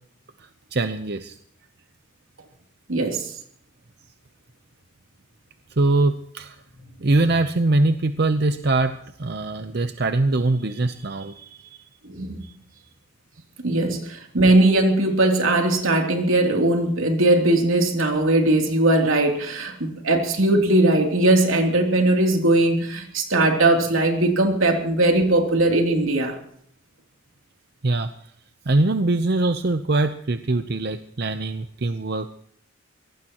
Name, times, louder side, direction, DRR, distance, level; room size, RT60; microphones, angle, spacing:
voice 1, 0.7-1.4 5.8-6.6 7.0-11.8 12.4-12.5 27.8-28.1 28.7-32.3, right 2 dB, 50° right, 9 dB, 0.7 m, -22 dB
voice 2, 2.9-3.3 12.0-12.4 13.6-26.4, right 2 dB, 85° right, 3 dB, 3.0 m, -19 dB
24.0 x 18.5 x 3.0 m, 0.63 s
head